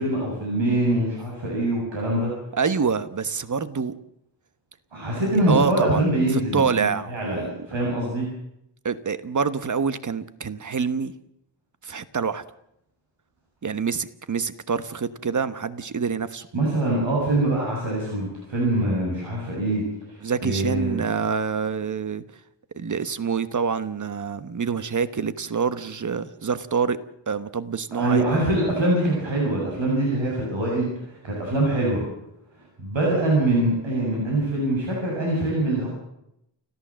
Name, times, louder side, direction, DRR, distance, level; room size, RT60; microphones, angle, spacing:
voice 1, 0.0-2.3 4.9-8.3 16.5-19.8 20.4-21.0 27.9-32.0 32.8-35.9, right 1 dB, 75° right, -3 dB, 7.7 m, -24 dB
voice 2, 2.5-3.9 5.5-6.0 6.3-7.5 8.8-11.1 11.8-12.4 13.6-16.4 20.2-22.2 22.7-27.0 27.3-28.2, right 5 dB, 40° right, 13 dB, 1.2 m, -26 dB
29.5 x 14.5 x 7.5 m, 0.81 s
wide cardioid pair, 130°, 46 cm